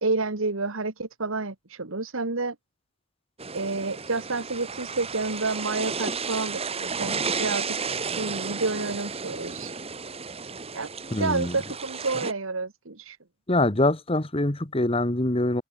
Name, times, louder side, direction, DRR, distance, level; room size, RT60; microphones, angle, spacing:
voice 1, 0.0-2.5 3.5-7.7 8.2-9.7 10.7-10.9 11.2-13.2, right 3 dB, 70° right, 1.6 m, -29 dB
sound 1, 3.4-12.3, right 5 dB, 30° right, 1.8 m, -33 dB
voice 2, 11.1-11.6 13.5-15.6, left 2 dB, 25° left, 1.5 m, -24 dB
open air
head